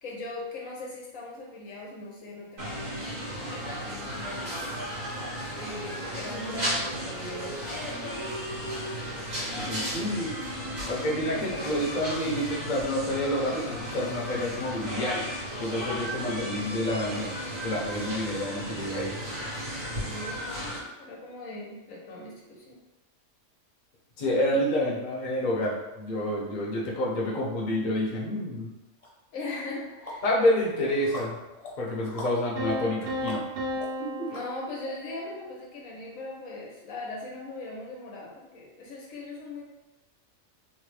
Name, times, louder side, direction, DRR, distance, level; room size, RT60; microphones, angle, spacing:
voice 1, 0.0-3.2 3.5-4.7 5.6-8.4 11.3-12.1 20.0-20.7 21.0-22.8 26.5-26.6 29.3-30.2 34.3-39.6, left 2 dB, 90° left, -3 dB, 1.2 m, -40 dB
sound 1, 2.6-20.8, equal, 90° right, 2.0 m, -34 dB
voice 2, 9.5-10.3 10.9-17.3 17.6-19.1 24.2-28.7 30.2-31.4 31.8-33.4, left 1 dB, 45° left, -4 dB, 0.7 m, -28 dB
sound 2, 29.0-29.1 29.5-34.9, left 2 dB, 70° left, 1.3 m, -44 dB
Piano, 32.6-35.5, left 1 dB, 65° right, 1.0 m, -34 dB
3.8 x 2.1 x 3.1 m, 1.0 s
omnidirectional pair, 1.4 m